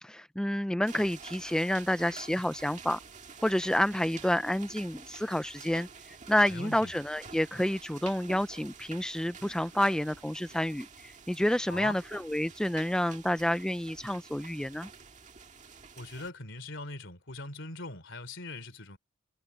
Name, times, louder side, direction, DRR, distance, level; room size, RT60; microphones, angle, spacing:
voice 1, 0.0-3.0 3.4-14.9, left 1 dB, 5° left, 0.4 m, -29 dB
sound 1, 0.9-16.3, right 5 dB, 40° right, 1.8 m, -49 dB
voice 2, 6.5-6.9 11.7-12.0 16.0-19.0, left 2 dB, 65° left, 3.5 m, -41 dB
head